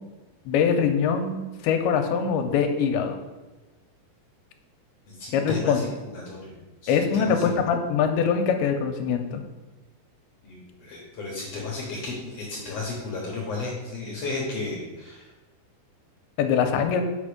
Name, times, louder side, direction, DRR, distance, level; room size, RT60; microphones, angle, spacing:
voice 1, 0.5-3.2 5.3-5.8 6.9-9.4 16.4-17.0, left 6 dB, 85° left, 6 dB, 2.6 m, -23 dB
voice 2, 5.2-6.5 6.8-7.4 10.4-15.3, left 3 dB, 65° left, -2 dB, 1.7 m, -33 dB
7.4 x 5.3 x 5.0 m, 1.2 s
omnidirectional pair, 4.4 m